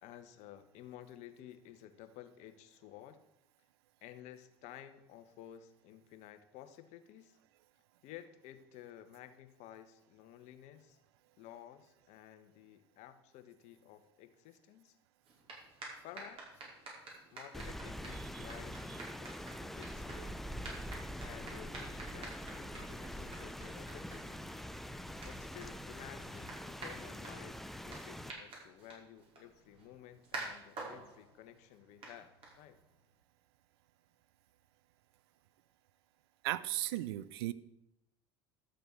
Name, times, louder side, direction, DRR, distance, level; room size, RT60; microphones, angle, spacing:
voice 1, 0.0-3.2 4.0-7.4 8.0-11.0 11.4-15.0 16.0-16.7 17.3-18.8 19.2-20.2 21.2-24.4 25.2-32.8, left 11 dB, 60° left, 10 dB, 1.2 m, -53 dB
sound 1, 15.2-33.0, right 2 dB, 45° right, 5.5 m, -51 dB
Rain, 17.5-28.3, equal, ahead, 0.7 m, -44 dB
voice 2, 36.4-37.5, right 15 dB, 75° right, 17 dB, 0.6 m, -36 dB
13.0 x 6.8 x 6.5 m, 0.86 s
hypercardioid pair, 80°, 13 cm